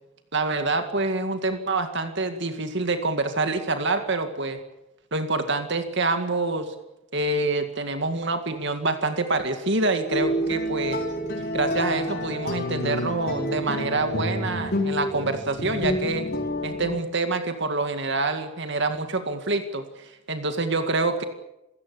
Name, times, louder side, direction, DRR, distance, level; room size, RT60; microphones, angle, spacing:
voice 1, 0.3-4.6 5.1-6.7 7.1-11.0 11.5-16.3 16.6-21.2, right 3 dB, 55° right, 7 dB, 2.1 m, -26 dB
sound 1, 10.1-17.0, equal, 45° left, 4.8 m, -28 dB
28.0 x 16.5 x 8.5 m, 0.93 s
head